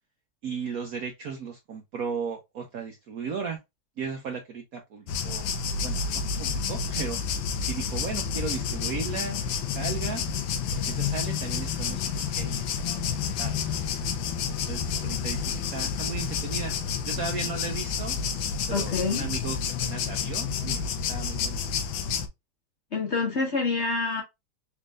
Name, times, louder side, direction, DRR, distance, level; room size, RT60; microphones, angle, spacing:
voice 1, 0.4-3.6 4.0-5.5 5.8-10.2 10.7-13.6 14.7-16.8 17.0-18.2 18.7-20.8 21.1-21.6, right 5 dB, 65° right, 0.9 m, -36 dB
sound 1, 5.1-22.3, left 6 dB, 85° left, 1.5 m, -30 dB
voice 2, 18.7-19.3 22.9-24.2, left 4 dB, 45° left, 1.0 m, -27 dB
4.2 x 3.6 x 2.4 m
omnidirectional pair, 2.2 m